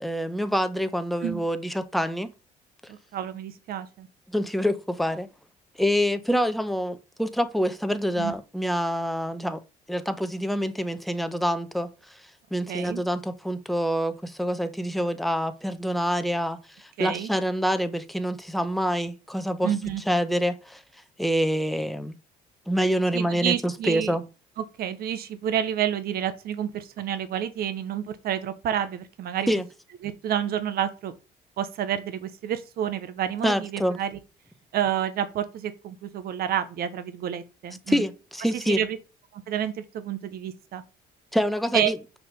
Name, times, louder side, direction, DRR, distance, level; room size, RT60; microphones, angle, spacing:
voice 1, 0.0-2.3 4.3-5.3 5.8-9.6 9.9-11.9 12.5-19.7 20.1-20.8 21.2-22.1 22.7-24.2 29.5-29.6 33.4-34.0 37.9-38.8 41.3-42.0, equal, ahead, 0.9 m, -26 dB
voice 2, 2.9-4.1 8.2-8.3 12.7-13.0 17.0-17.3 19.6-20.0 23.1-24.1 24.6-29.5 30.0-31.1 31.6-34.1 34.7-38.0 38.7-39.0 39.3-40.8 41.7-41.9, right 10 dB, 65° right, 1.0 m, -29 dB
6.7 x 5.0 x 6.7 m
cardioid pair, 110°, 17 cm